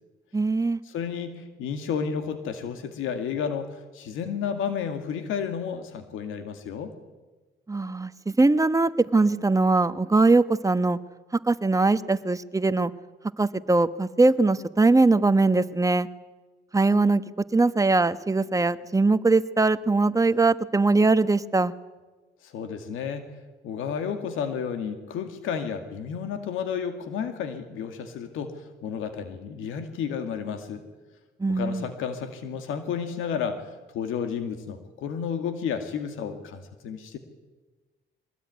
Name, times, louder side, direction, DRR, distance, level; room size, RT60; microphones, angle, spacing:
voice 1, 0.3-0.8 7.7-11.0 11.4-12.9 13.4-16.1 16.7-17.2 17.5-21.7 31.4-31.9, right 3 dB, 15° right, 12 dB, 1.2 m, -21 dB
voice 2, 0.8-6.9 22.4-23.3 23.6-30.8 31.5-37.2, left 7 dB, 90° left, 7 dB, 2.2 m, -32 dB
23.5 x 19.0 x 9.5 m, 1.2 s
cardioid pair, 90°, 20 cm